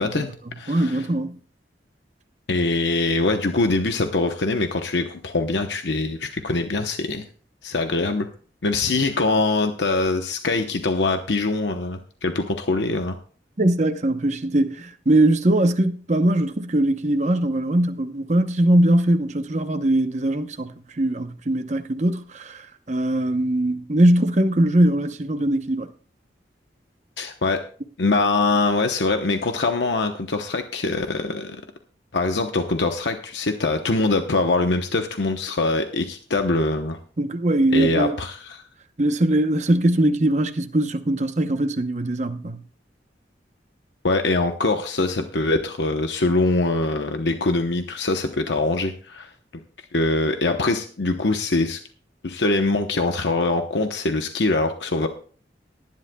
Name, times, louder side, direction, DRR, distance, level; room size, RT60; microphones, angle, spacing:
voice 1, 0.0-1.0 2.5-7.3 7.6-8.3 8.6-13.2 27.2-27.6 28.0-31.6 32.1-37.0 37.7-38.6 44.0-49.3 49.9-51.8 52.2-55.1, left 2 dB, 90° left, 0.9 m, -23 dB
voice 2, 0.7-1.4 13.6-25.9 37.2-38.2 39.0-42.6, right 1 dB, 40° right, 0.8 m, -21 dB
19.5 x 10.5 x 2.3 m
head